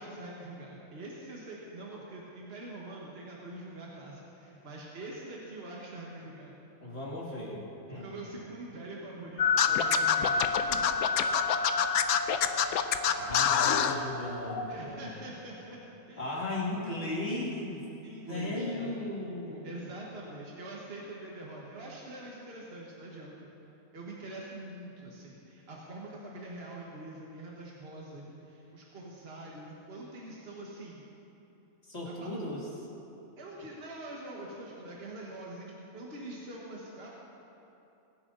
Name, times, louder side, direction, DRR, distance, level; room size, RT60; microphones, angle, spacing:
voice 1, 0.0-6.5 7.9-10.8 14.7-15.8 16.1-16.4 18.0-19.0 19.5-23.5 23.9-31.0 32.1-32.3 33.4-37.1, right 2 dB, 45° right, -4 dB, 1.8 m, -44 dB
voice 2, 6.8-8.3 13.2-15.0 16.2-17.8 18.3-19.7 31.8-32.9, left 1 dB, 45° left, -4 dB, 2.7 m, -36 dB
sound 1, 9.4-14.8, left 5 dB, 65° left, 1.3 m, -31 dB
Scratching (performance technique), 9.6-13.9, left 9 dB, 90° left, 1.1 m, -26 dB
23.0 x 10.5 x 4.0 m, 3.0 s
omnidirectional pair, 1.5 m